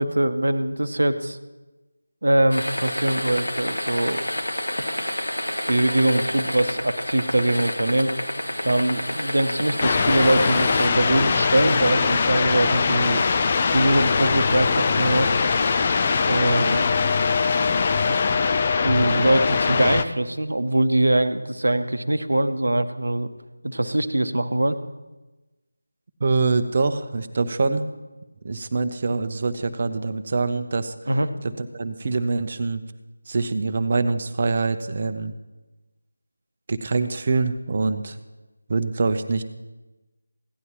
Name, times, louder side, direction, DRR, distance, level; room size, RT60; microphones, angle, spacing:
voice 1, 0.0-1.4 2.2-4.2 5.6-8.2 8.6-13.2 13.7-15.3 16.3-16.9 18.1-18.2 18.8-23.3 23.6-24.8 31.1-31.3, right 1 dB, 60° right, 10 dB, 0.8 m, -22 dB
sound 1, 2.5-10.9, left 1 dB, 70° left, 1.7 m, -29 dB
sound 2, 9.8-20.0, left 5 dB, 25° left, 0.4 m, -21 dB
voice 2, 26.2-27.8 28.4-31.1 31.4-32.8 33.3-35.3 36.7-38.2 38.7-39.4, right 3 dB, 35° right, 10 dB, 0.7 m, -24 dB
17.0 x 10.5 x 2.9 m, 1.1 s
figure-of-eight pair, 165°, 0 cm